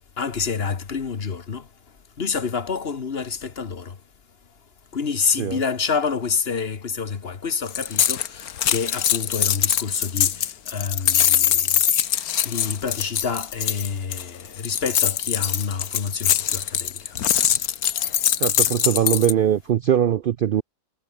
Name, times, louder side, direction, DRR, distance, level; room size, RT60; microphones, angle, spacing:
voice 1, 0.2-1.7 2.2-3.9 4.9-11.7 12.4-17.1, left 5 dB, 45° left, 1.5 m, -28 dB
sound 1, 7.7-19.3, left 10 dB, 80° left, 1.5 m, -22 dB
voice 2, 18.4-20.6, right 10 dB, 85° right, 0.4 m, -21 dB
omnidirectional pair, 1.5 m